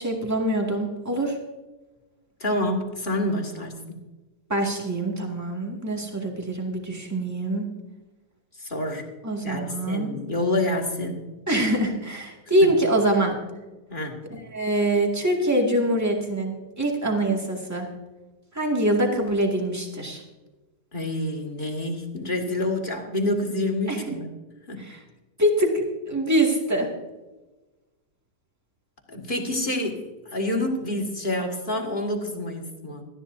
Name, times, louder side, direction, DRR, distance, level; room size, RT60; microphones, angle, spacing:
voice 1, 0.0-1.4 4.5-7.7 9.2-10.1 11.5-13.4 14.3-17.9 18.5-20.2 23.9-24.2 24.8-25.0 25.4-26.9, right 1 dB, 10° right, -1 dB, 2.0 m, -24 dB
voice 2, 2.4-4.1 8.6-9.1 9.4-11.3 12.6-12.7 13.9-14.2 20.9-24.3 24.7-24.8 29.1-33.0, left 1 dB, 30° left, 1 dB, 1.9 m, -28 dB
18.5 x 13.0 x 2.7 m, 1.1 s
omnidirectional pair, 1.8 m